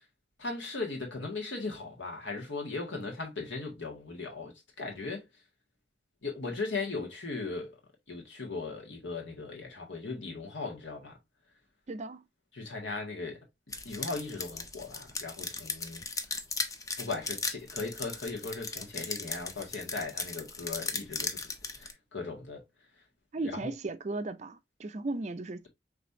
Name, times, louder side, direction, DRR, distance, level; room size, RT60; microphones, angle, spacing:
voice 1, 0.4-5.3 6.2-7.7 8.1-11.2 12.5-13.4 13.9-16.0 17.0-21.4 21.7-22.6 23.4-23.7, left 3 dB, 80° left, 1.8 m, -38 dB
voice 2, 11.9-12.2 23.3-25.7, right 2 dB, 35° right, 0.4 m, -36 dB
sound 1, 13.7-21.9, left 3 dB, 20° left, 0.5 m, -37 dB
5.1 x 3.3 x 2.7 m
head